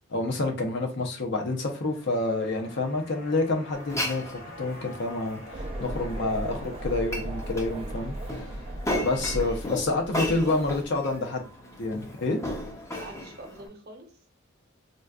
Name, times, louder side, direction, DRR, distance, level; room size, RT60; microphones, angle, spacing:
voice 1, 0.1-4.2 4.6-8.5 9.0-11.5 11.8-12.4, left 2 dB, 60° left, 0.7 m, -28 dB
sound 1, 1.4-11.8 12.1-12.2, left 2 dB, 75° left, 1.2 m, -48 dB
Glass, 3.7-13.7, left 1 dB, 15° left, 0.6 m, -36 dB
sound 2, 5.5-11.2, right 1 dB, 30° right, 0.4 m, -36 dB
voice 2, 9.2-10.6 12.9-14.1, right 2 dB, 50° right, 0.8 m, -45 dB
3.9 x 2.4 x 2.3 m
head